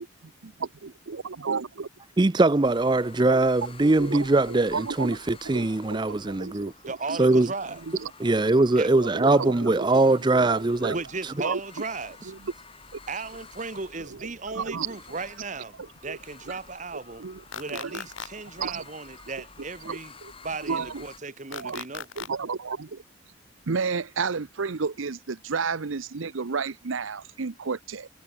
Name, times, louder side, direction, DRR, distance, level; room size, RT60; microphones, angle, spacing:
voice 1, 0.4-1.9 3.2-3.4 3.8-4.2 4.5-7.5 7.9-8.1 9.0-9.9 10.4-11.0 11.4-11.6 12.3-12.5 14.1-14.2 14.5-15.0 15.8-16.2 16.5-16.6 17.2-17.4 17.7-18.0 18.6-18.8 19.8-20.3 20.7-21.0 21.5-21.8 22.2-23.0 23.7-28.1, right 5 dB, 80° right, 0.8 m, -32 dB
voice 2, 2.2-6.7 7.2-7.5 8.2-11.0, right 2 dB, 20° right, 0.5 m, -22 dB
sound 1, 2.6-21.2, left 4 dB, 25° left, 5.0 m, -50 dB
voice 3, 6.9-7.8 8.7-8.9 10.9-12.3 13.1-15.7 16.0-17.3 17.6-20.1 20.4-22.1, right 4 dB, 35° right, 1.1 m, -36 dB
sound 2, 17.5-18.3 21.5-22.3, left 7 dB, 75° left, 1.3 m, -36 dB
head